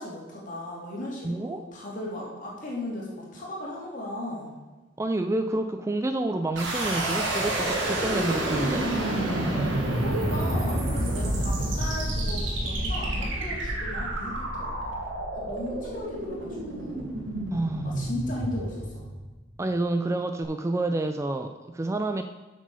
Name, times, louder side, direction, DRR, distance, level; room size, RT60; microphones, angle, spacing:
voice 1, 0.0-4.5 9.9-14.7 15.3-17.1 17.8-19.1, left 1 dB, 45° left, -4 dB, 2.8 m, -36 dB
voice 2, 1.2-1.6 5.0-8.9 17.5-17.9 19.6-22.2, right 2 dB, 15° right, 8 dB, 0.3 m, -28 dB
sound 1, 6.6-19.5, right 1 dB, 80° right, 2.3 m, -29 dB
8.1 x 6.2 x 6.8 m, 1.2 s
head